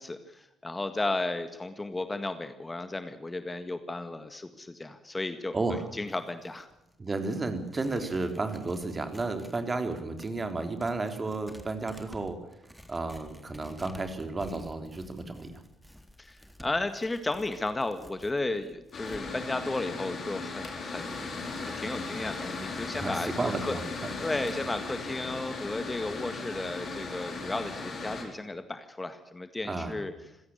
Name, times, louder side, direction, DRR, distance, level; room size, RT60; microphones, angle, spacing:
voice 1, 0.0-6.7 16.2-21.2 21.6-23.3 23.6-23.7 24.2-30.1, left 2 dB, 20° left, 9 dB, 1.8 m, -34 dB
voice 2, 5.5-5.9 7.0-12.4 12.9-15.6 22.9-23.8 29.6-30.0, right 3 dB, 25° right, 7 dB, 3.6 m, -32 dB
Tearing, 5.9-9.6 9.9-19.2, equal, ahead, 3.6 m, -52 dB
Mechanical fan, 18.9-28.2, left 3 dB, 45° left, 5.7 m, -37 dB
26.5 x 17.0 x 6.8 m, 0.96 s
figure-of-eight pair, 45°, 0 cm